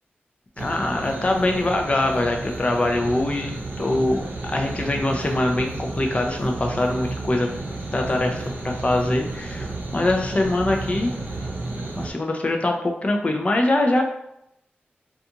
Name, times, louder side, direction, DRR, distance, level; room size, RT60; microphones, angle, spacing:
voice 1, 0.6-7.5 7.9-11.1 12.0-14.0, left 2 dB, 35° left, 2 dB, 0.4 m, -23 dB
sound 1, 0.6-12.1, right 2 dB, 60° right, 0.6 m, -32 dB
2.5 x 2.3 x 2.7 m, 0.80 s
wide cardioid pair, 85°, 4 cm